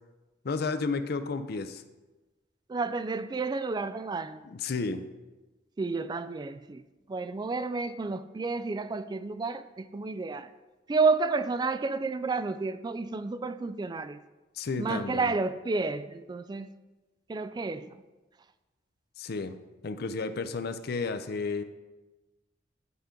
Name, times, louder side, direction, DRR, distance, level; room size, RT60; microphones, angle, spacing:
voice 1, 0.4-1.8 4.4-5.0 14.6-15.3 19.2-19.5 19.8-21.6, left 4 dB, 55° left, 0.5 m, -32 dB
voice 2, 2.7-4.4 5.8-6.8 7.1-10.5 10.9-14.2 14.8-16.7 17.3-17.9, right 4 dB, 25° right, 0.3 m, -30 dB
10.5 x 3.8 x 5.1 m
head